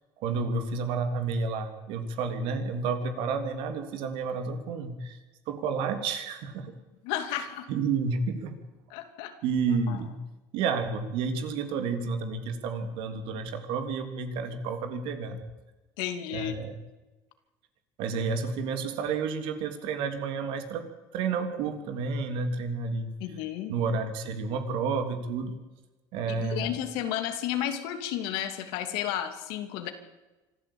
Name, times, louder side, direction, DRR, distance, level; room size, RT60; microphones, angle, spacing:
voice 1, 0.2-5.2 5.5-6.7 7.7-8.6 9.4-10.1 10.5-15.4 16.3-16.7 18.0-20.8 21.1-23.1 23.7-25.5 26.1-26.7, right 4 dB, 70° right, 7 dB, 3.3 m, -30 dB
voice 2, 7.0-7.7 8.9-9.3 9.9-10.0 16.0-16.5 23.2-23.7 26.3-29.9, left 11 dB, 80° left, 7 dB, 2.8 m, -32 dB
25.5 x 13.5 x 8.8 m, 1.1 s
supercardioid pair, 105°, 9 cm